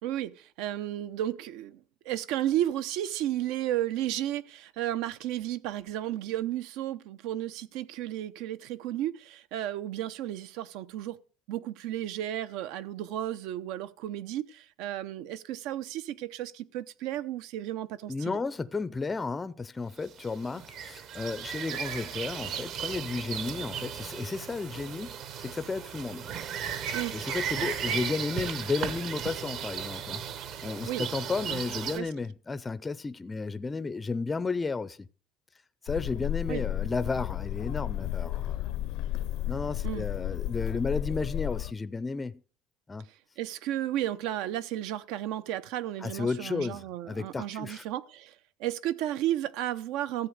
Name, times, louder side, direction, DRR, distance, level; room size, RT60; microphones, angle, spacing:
voice 1, 0.0-11.2 11.5-18.4 26.9-27.2 30.8-31.0 31.4-32.1 36.5-36.6 39.8-40.0 43.4-50.3, right 12 dB, 75° right, 0.8 m, -33 dB
voice 2, 18.1-26.3 26.8-26.9 27.1-30.2 30.6-35.1 35.8-38.7 39.5-42.4 42.9-43.0 46.0-47.8, left 4 dB, 15° left, 0.5 m, -33 dB
sound 1, 20.1-32.0, right 8 dB, 50° right, 1.3 m, -36 dB
sound 2, 35.9-41.7, left 13 dB, 70° left, 0.6 m, -33 dB
14.5 x 8.0 x 6.5 m
cardioid pair, 150°, 0 cm